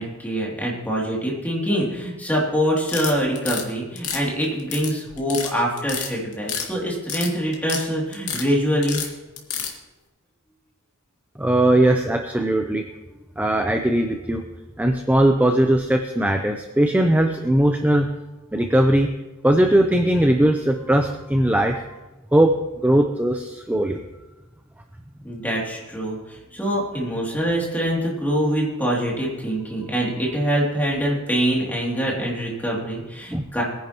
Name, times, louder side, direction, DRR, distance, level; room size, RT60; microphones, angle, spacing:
voice 1, 0.0-9.0 25.2-26.2 26.5-33.6, equal, 10° left, -4 dB, 2.8 m, -24 dB
sound 1, 2.8-3.6 4.0-4.9 5.2-5.5 5.8-6.7 6.9-7.8 8.1-8.5 8.8-9.7, left 7 dB, 80° left, 2.0 m, -29 dB
voice 2, 11.4-12.9 13.4-14.4 14.8-18.1 18.5-19.1 19.4-21.8 22.3-22.5 22.8-24.0 33.3-33.4, right 1 dB, 5° right, 4 dB, 0.6 m, -19 dB
21.0 x 10.5 x 3.0 m, 1.1 s
head